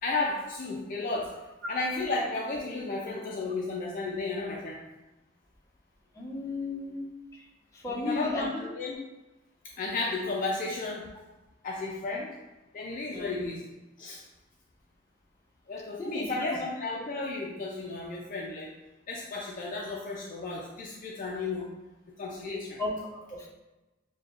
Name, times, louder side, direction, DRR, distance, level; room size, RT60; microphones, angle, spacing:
voice 1, 0.0-1.3 1.7-4.8 7.9-9.0 9.8-11.1 11.6-12.3 12.7-13.6 14.0-14.2 15.7-18.7 19.1-21.7 22.2-22.8, left 3 dB, 45° left, -2 dB, 0.4 m, -33 dB
voice 2, 6.1-7.1 7.3-7.4 7.7-8.7 13.1-13.5 16.0-16.6 22.8-23.5, left 2 dB, 15° left, -4 dB, 0.8 m, -35 dB
6.4 x 2.2 x 2.4 m, 1.1 s
head